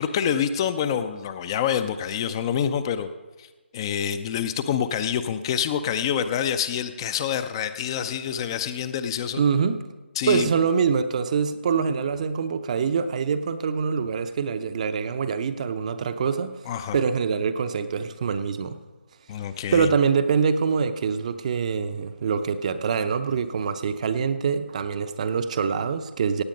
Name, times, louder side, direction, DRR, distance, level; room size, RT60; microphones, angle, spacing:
voice 1, 0.0-3.1 3.4-3.5 3.7-9.4 10.2-10.5 16.7-17.0 19.3-19.9, left 8 dB, 25° left, 11 dB, 0.5 m, -26 dB
voice 2, 9.4-9.8 10.3-16.6 16.9-18.8 19.7-26.4, right 6 dB, 35° right, 11 dB, 0.7 m, -24 dB
16.5 x 8.9 x 5.3 m, 1.2 s
figure-of-eight pair, 150°, 6 cm